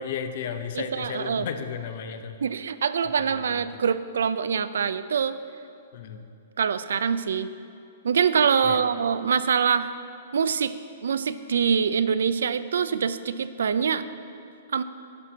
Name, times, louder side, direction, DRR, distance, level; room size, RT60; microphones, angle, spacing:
voice 1, 0.0-2.4 3.2-3.7 5.9-6.3 8.6-8.8, left 7 dB, 55° left, 8 dB, 0.7 m, -34 dB
voice 2, 0.7-1.5 2.4-5.4 6.6-7.5 8.0-9.9 10.3-10.8 11.0-14.0 14.7-14.8, right 6 dB, 85° right, 14 dB, 0.4 m, -24 dB
11.0 x 4.5 x 6.0 m, 2.5 s
hypercardioid pair, 145°, 0 cm